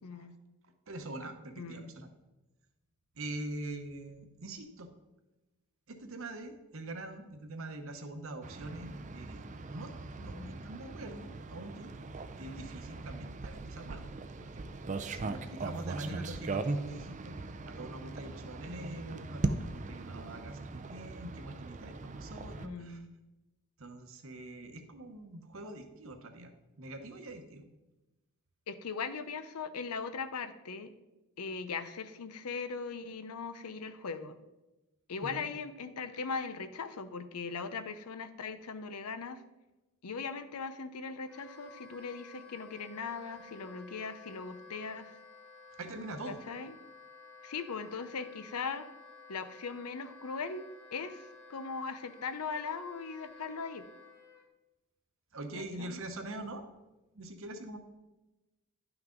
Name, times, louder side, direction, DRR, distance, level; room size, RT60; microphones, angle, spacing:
voice 1, 0.0-0.3 1.6-1.9 10.2-10.6 16.0-16.3 22.6-23.1 28.7-30.9 31.4-34.3 35.1-39.4 40.0-45.2 46.3-46.7 47.4-48.9 49.3-50.7 50.9-53.8 55.5-56.0, left 5 dB, 90° left, 11 dB, 0.7 m, -39 dB
voice 2, 0.9-2.1 3.2-4.9 5.9-9.9 10.2-11.9 12.4-14.1 14.4-14.6 15.1-17.4 17.7-23.0 23.8-26.5 26.8-27.6 35.2-35.4 45.8-46.4 55.3-56.6 57.1-57.8, right 2 dB, 60° right, 7 dB, 1.0 m, -44 dB
sound 1, 8.4-22.7, right 3 dB, 35° right, 0.4 m, -40 dB
Wind instrument woodwind instrument, 41.2-54.4, left 3 dB, 15° left, 1.8 m, -54 dB
10.5 x 5.9 x 3.8 m, 1.0 s
head